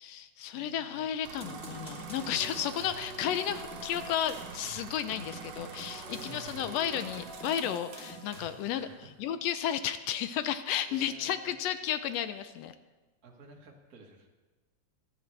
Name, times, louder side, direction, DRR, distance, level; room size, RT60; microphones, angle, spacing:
voice 1, 0.0-8.9 9.2-12.7, left 10 dB, 80° left, 11 dB, 1.5 m, -33 dB
voice 2, 0.5-1.0 6.1-6.7 8.7-9.1 10.7-11.6 13.2-14.3, right 3 dB, 40° right, 0 dB, 1.5 m, -52 dB
sound 1, 1.2-8.1, right 7 dB, 75° right, 2.2 m, -46 dB
sound 2, 1.4-8.8, right 1 dB, ahead, 2.5 m, -45 dB
25.0 x 9.9 x 3.3 m, 1.2 s
omnidirectional pair, 3.5 m